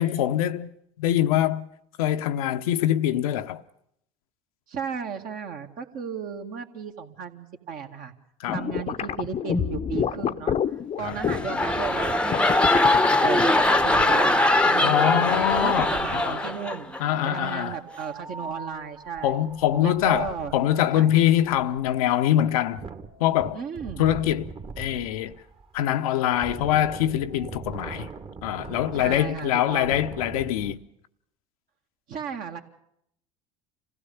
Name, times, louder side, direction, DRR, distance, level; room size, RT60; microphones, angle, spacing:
voice 1, 0.0-1.7 2.0-3.6 8.4-8.6 11.0-11.1 14.8-16.4 17.0-17.8 19.2-22.9 23.2-23.6 24.0-24.5 24.8-25.4 25.7-28.1 28.4-30.8, left 12 dB, 75° left, 0.8 m, -24 dB
voice 2, 4.7-8.1 8.5-10.6 11.0-12.9 13.2-15.0 15.5-16.9 17.2-19.3 19.8-20.5 20.9-21.1 23.5-24.1 28.9-30.0 32.1-32.6, right 6 dB, 50° right, 2.1 m, -34 dB
sound 1, 8.5-11.6 12.2-13.5, left 8 dB, 35° left, 0.8 m, -28 dB
sound 2, 11.0-17.0 17.4-17.7, left 2 dB, 5° left, 0.9 m, -22 dB
Wind, 11.0-16.4 17.5-30.7, right 5 dB, 30° right, 1.6 m, -41 dB
26.5 x 16.0 x 7.1 m
hypercardioid pair, 75°, 18 cm